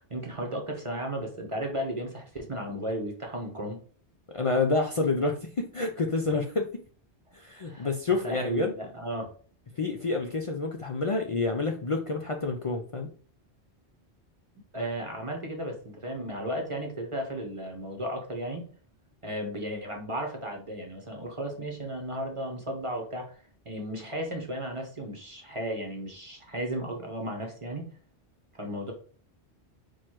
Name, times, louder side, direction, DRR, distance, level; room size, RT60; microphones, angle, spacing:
voice 1, 0.0-3.8 7.6-9.3 14.7-18.7 19.2-27.9 28.5-28.9, right 1 dB, 30° right, 2 dB, 0.8 m, -35 dB
voice 2, 4.3-6.7 7.3-8.7 9.8-13.1, left 3 dB, 55° left, 2 dB, 0.3 m, -28 dB
4.5 x 2.3 x 4.5 m, 0.42 s
omnidirectional pair, 1.1 m